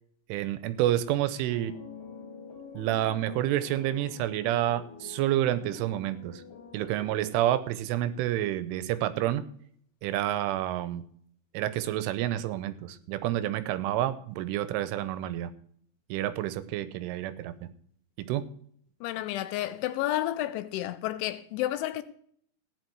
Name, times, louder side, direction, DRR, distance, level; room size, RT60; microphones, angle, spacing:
voice 1, 0.3-1.7 2.7-6.4 6.7-9.4 10.0-11.0 11.5-15.5 16.1-17.5 18.2-18.4, right 13 dB, 85° right, 3.3 m, -29 dB
sound 1, 1.4-7.8, left 5 dB, 50° left, 2.6 m, -46 dB
voice 2, 19.0-22.0, left 14 dB, 80° left, 3.0 m, -31 dB
15.5 x 10.5 x 4.7 m
omnidirectional pair, 5.6 m